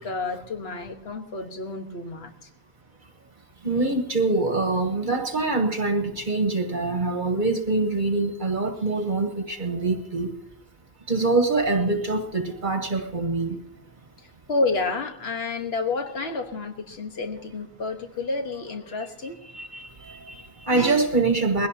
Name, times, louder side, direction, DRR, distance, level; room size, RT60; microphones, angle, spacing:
voice 1, 0.0-2.5 14.5-19.4, left 3 dB, 75° left, 4 dB, 1.6 m, -30 dB
voice 2, 3.6-10.3 11.1-13.6 19.5-21.7, right 3 dB, 50° right, 5 dB, 1.3 m, -24 dB
20.5 x 17.0 x 2.8 m, 0.76 s
omnidirectional pair, 1.1 m